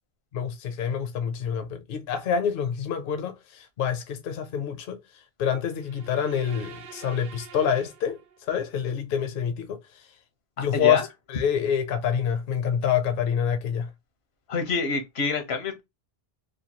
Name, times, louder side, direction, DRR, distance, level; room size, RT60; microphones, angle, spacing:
voice 1, 0.3-5.0 5.4-10.0 10.6-13.9, left 8 dB, 65° left, 0.7 m, -27 dB
sound 1, 5.7-8.7, right 7 dB, 90° right, 0.9 m, -46 dB
voice 2, 10.6-11.1 14.5-15.8, left 4 dB, 85° left, 1.1 m, -27 dB
3.1 x 2.2 x 2.7 m
omnidirectional pair, 1.0 m